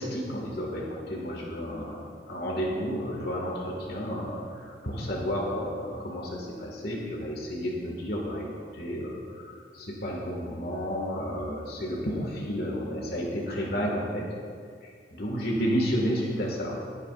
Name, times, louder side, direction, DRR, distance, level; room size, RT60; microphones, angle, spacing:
voice 1, 0.0-8.5 8.7-14.3 15.1-16.8, equal, 60° left, -2 dB, 1.9 m, -31 dB
20.5 x 8.8 x 2.5 m, 2.2 s
head